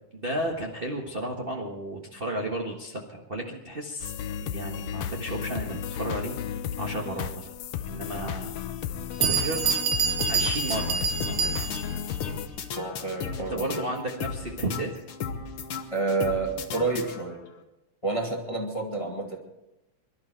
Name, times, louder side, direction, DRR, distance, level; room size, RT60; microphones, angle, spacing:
voice 1, 0.1-4.1 4.4-6.4 6.8-7.5 7.8-8.6 9.2-9.7 10.3-11.9 13.5-15.0, right 1 dB, 35° right, 0 dB, 0.9 m, -33 dB
sound 1, 4.0-12.5, left 8 dB, 70° left, 1.7 m, -34 dB
Bell, 8.0-8.1 8.8-8.9 9.2-12.0, right 6 dB, 80° right, 2.6 m, -27 dB
sound 2, 9.2-17.5, left 6 dB, 55° left, 1.8 m, -36 dB
voice 2, 12.7-13.8 15.9-17.5 18.0-19.4, right 3 dB, 15° left, 0 dB, 1.6 m, -29 dB
24.0 x 12.0 x 4.5 m, 0.93 s
omnidirectional pair, 3.5 m